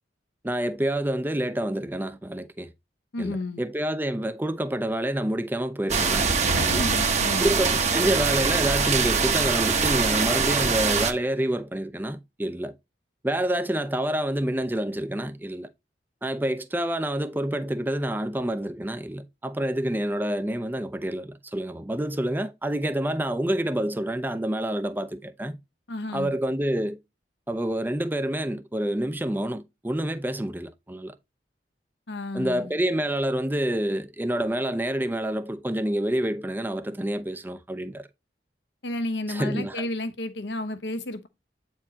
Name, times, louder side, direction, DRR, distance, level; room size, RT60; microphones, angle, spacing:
voice 1, 0.4-2.7 3.2-6.3 6.6-6.9 7.4-12.7 13.2-15.7 16.2-25.6 26.1-27.0 27.5-31.1 32.3-38.1 39.3-39.8, right 1 dB, 10° right, 0.5 m, -28 dB
voice 2, 3.1-3.6 6.5-7.5 25.9-26.3 32.1-32.7 38.8-41.3, left 1 dB, 65° left, 0.9 m, -32 dB
sound 1, 5.9-11.1, right 5 dB, 40° right, 0.9 m, -23 dB
8.6 x 4.5 x 2.8 m
head